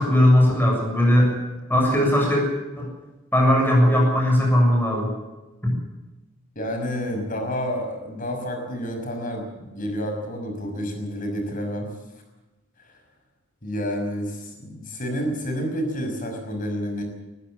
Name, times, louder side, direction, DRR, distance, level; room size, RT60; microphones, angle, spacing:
voice 1, 0.0-1.4 1.7-2.4 2.8-2.9 3.3-5.1 5.6-5.7, left 1 dB, 10° left, -1 dB, 7.2 m, -18 dB
voice 2, 6.6-11.9 12.8-12.9 13.6-17.0, equal, 45° left, 4 dB, 5.9 m, -29 dB
20.0 x 15.0 x 8.9 m, 1.1 s
head